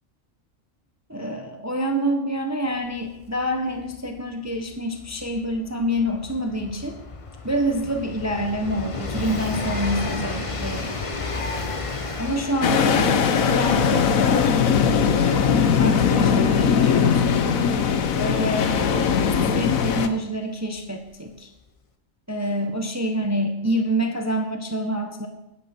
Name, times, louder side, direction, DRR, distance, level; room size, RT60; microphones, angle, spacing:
voice 1, 1.1-7.0 7.4-10.9 12.2-14.7 15.0-15.4 15.8-17.5 18.1-18.8 19.2-21.5 22.3-25.3, equal, 15° right, 4 dB, 0.8 m, -27 dB
Train, 2.9-3.0 3.2-19.8 20.8-20.9, left 3 dB, 30° left, 0.8 m, -34 dB
sound 1, 12.6-20.1, left 7 dB, 85° left, 1.3 m, -20 dB
11.5 x 9.7 x 4.3 m, 0.91 s
omnidirectional pair, 1.4 m